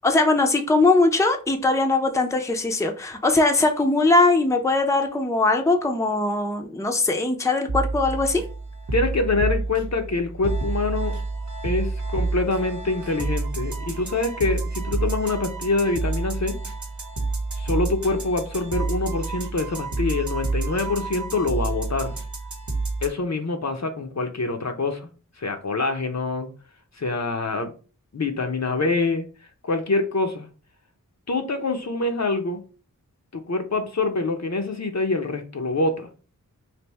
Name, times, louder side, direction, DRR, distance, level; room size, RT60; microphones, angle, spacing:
voice 1, 0.0-8.4, left 2 dB, 10° left, 0.5 m, -20 dB
sound 1, 7.7-23.1, right 3 dB, 55° right, 0.9 m, -29 dB
voice 2, 8.9-11.2 11.6-16.6 17.6-22.1 23.0-25.1 25.4-26.5 27.0-27.7 28.1-29.3 29.6-30.5 31.3-32.6 33.3-36.1, left 3 dB, 50° left, 0.7 m, -25 dB
3.4 x 2.6 x 4.0 m
wide cardioid pair, 55°, 34 cm